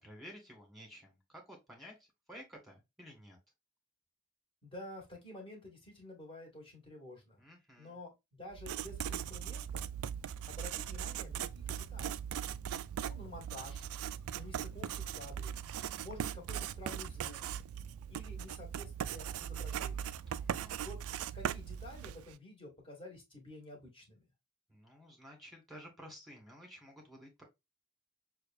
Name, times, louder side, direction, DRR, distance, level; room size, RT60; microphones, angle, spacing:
voice 1, 0.0-1.9 2.3-3.4 7.4-8.0 20.3-20.8 24.7-27.4, equal, ahead, 1.7 m, -53 dB
voice 2, 4.6-7.4 7.8-9.8 10.5-12.2 13.0-13.9 14.3-15.6 16.0-17.4 18.1-20.1 20.8-21.0 21.3-24.2, left 1 dB, 25° left, 1.6 m, -50 dB
Writing, 8.5-22.3, right 9 dB, 80° right, 0.3 m, -39 dB
6.4 x 2.3 x 2.4 m
head